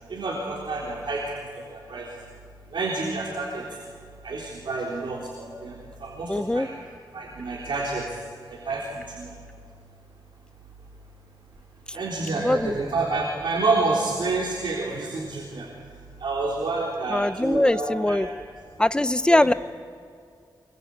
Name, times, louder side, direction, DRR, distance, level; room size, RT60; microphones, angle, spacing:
voice 1, 0.1-1.2 1.7-2.1 2.7-3.6 4.2-5.7 6.0-6.7 7.1-8.0 8.5-9.3 11.9-15.7 16.2-18.3 19.3-19.4, right 3 dB, 75° right, -3 dB, 3.7 m, -28 dB
voice 2, 6.3-6.7 12.4-12.8 17.1-18.3 18.8-19.5, left 1 dB, 10° left, 14 dB, 0.6 m, -21 dB
25.0 x 23.0 x 8.6 m, 2.4 s
wide cardioid pair, 145°, 8 cm